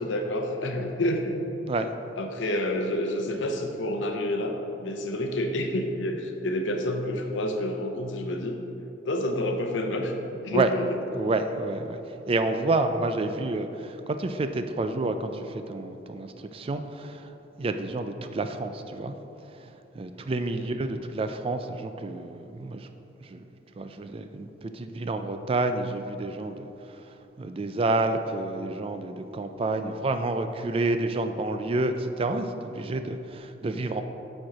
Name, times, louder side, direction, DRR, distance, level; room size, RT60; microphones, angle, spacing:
voice 1, 0.0-1.3 2.2-8.6 9.1-10.1 10.4-10.9 20.5-20.7, left 1 dB, 85° left, 4 dB, 0.7 m, -29 dB
voice 2, 11.1-19.2 19.5-22.9 23.2-23.5 23.8-34.0, right 2 dB, 30° right, 8 dB, 0.3 m, -29 dB
7.6 x 4.4 x 4.8 m, 2.9 s
head